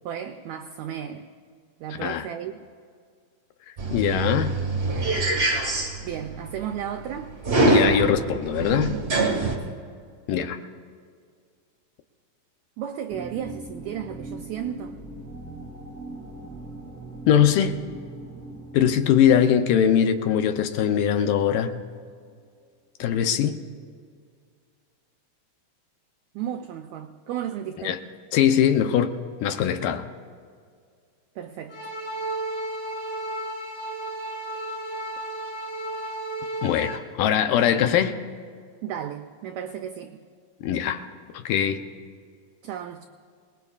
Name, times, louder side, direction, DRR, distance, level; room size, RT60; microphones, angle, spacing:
voice 1, 0.0-1.3 1.8-2.7 5.4-5.6 6.0-7.3 9.7-9.8 12.8-15.0 26.3-28.0 31.3-31.8 38.8-40.2 42.6-43.0, right 9 dB, 85° right, 6 dB, 1.6 m, -34 dB
sound 1, 3.8-9.5, right 3 dB, 60° right, 0.6 m, -25 dB
voice 2, 3.9-4.6 7.7-9.0 10.3-10.6 17.3-17.8 18.7-21.8 23.0-23.6 27.8-28.0 28.3-29.1 29.4-30.0 36.6-38.2 40.6-41.0 41.3-41.8, left 9 dB, 80° left, 8 dB, 2.3 m, -21 dB
sound 2, 13.1-21.6, right 2 dB, 10° right, 0.9 m, -41 dB
sound 3, 31.7-36.9, right 1 dB, 55° left, 0.8 m, -33 dB
26.0 x 19.5 x 2.4 m, 2.1 s
omnidirectional pair, 3.9 m